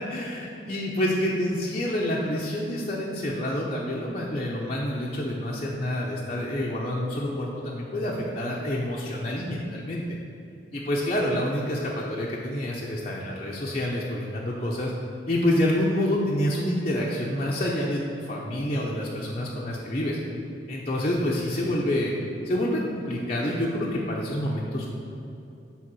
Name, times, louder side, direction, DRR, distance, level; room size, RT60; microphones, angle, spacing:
voice 1, 0.1-10.0 10.7-14.9 15.3-20.2 20.7-22.1 22.4-24.9, left 1 dB, 35° left, -5 dB, 0.6 m, -27 dB
7.5 x 3.5 x 6.1 m, 2.8 s
head